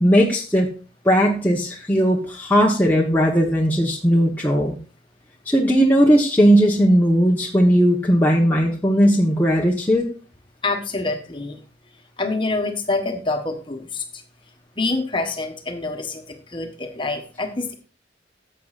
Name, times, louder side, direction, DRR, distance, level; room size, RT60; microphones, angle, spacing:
voice 1, 0.0-0.7 1.0-4.8 5.5-10.1, equal, 10° left, -2 dB, 1.0 m, -17 dB
voice 2, 10.6-11.6 12.2-14.2 14.7-17.7, left 3 dB, 25° left, 5 dB, 1.3 m, -26 dB
14.0 x 7.7 x 2.5 m, 0.37 s
head